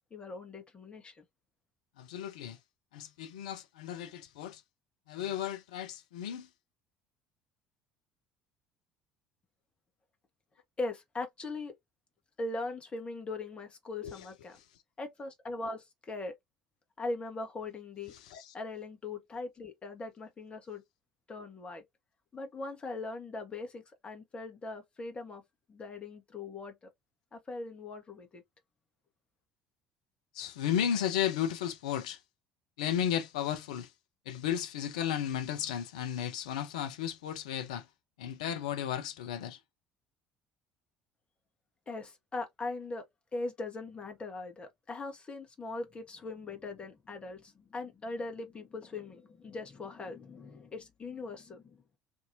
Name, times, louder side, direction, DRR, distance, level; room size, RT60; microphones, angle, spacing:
voice 1, 0.1-1.2 10.8-11.7 12.4-14.6 15.0-16.3 17.0-18.1 18.5-20.8 21.3-21.8 22.3-25.4 25.7-26.7 27.3-28.4 41.9-43.0 43.3-51.8, left 3 dB, 25° left, 1.1 m, -40 dB
voice 2, 2.0-2.6 2.9-4.6 5.1-6.5 14.0-14.3 14.5-14.6 18.1-18.5 30.3-32.2 32.8-33.9 34.3-37.9 38.2-39.6, left 10 dB, 70° left, 0.5 m, -34 dB
2.7 x 2.6 x 2.6 m
figure-of-eight pair, 60°, 4 cm